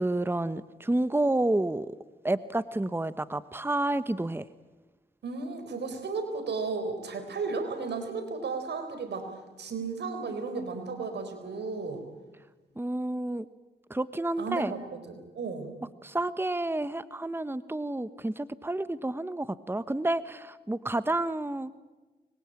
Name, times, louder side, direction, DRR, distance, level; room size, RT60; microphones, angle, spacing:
voice 1, 0.0-1.9 2.2-4.5 12.8-13.5 13.9-14.7 16.0-21.7, right 2 dB, 15° right, 14 dB, 1.1 m, -30 dB
voice 2, 5.2-9.3 9.6-12.0 14.4-15.7, right 4 dB, 85° right, 7 dB, 4.4 m, -34 dB
25.5 x 21.5 x 8.9 m, 1.2 s
cardioid pair, 50°, 17 cm